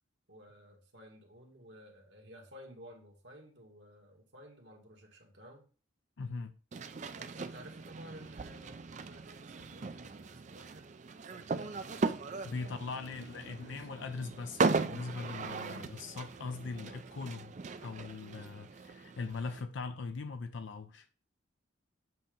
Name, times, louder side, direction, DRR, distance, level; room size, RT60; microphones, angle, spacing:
voice 1, 0.3-5.7 7.2-10.9 11.3-13.9, equal, 65° right, 1.6 m, -54 dB
voice 2, 6.2-6.5 12.4-17.5 17.8-21.1, left 4 dB, 70° left, 0.5 m, -40 dB
sound 1, 6.7-19.6, right 4 dB, 40° right, 0.4 m, -38 dB
7.8 x 2.9 x 5.1 m
head